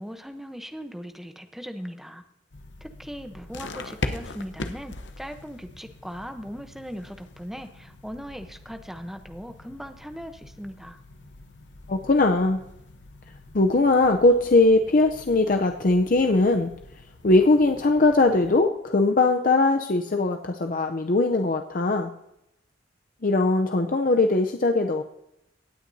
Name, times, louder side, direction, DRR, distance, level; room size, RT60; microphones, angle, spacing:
voice 1, 0.0-2.2 2.8-11.0, equal, ahead, 7 dB, 0.8 m, -39 dB
sound 1, 2.5-18.6, left 2 dB, 75° left, 0.9 m, -41 dB
voice 2, 11.9-12.6 13.5-16.7 17.2-22.1 23.2-25.0, left 2 dB, 50° left, 5 dB, 0.6 m, -20 dB
17.5 x 9.3 x 2.7 m, 0.82 s
head